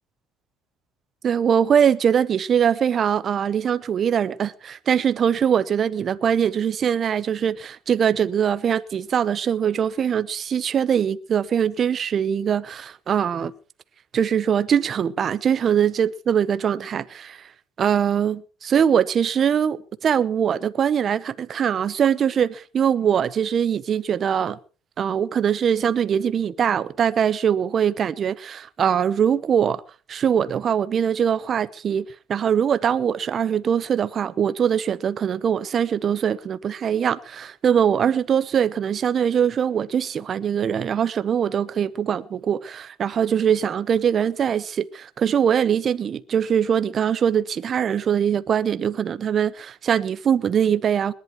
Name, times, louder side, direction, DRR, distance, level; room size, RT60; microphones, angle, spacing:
voice 1, 1.2-13.5 14.1-17.5 17.8-24.6 25.0-29.8 30.1-32.0 32.3-51.1, right 8 dB, 30° right, 0.7 m, -22 dB
21.0 x 11.0 x 4.5 m
cardioid pair, 175°, 0 cm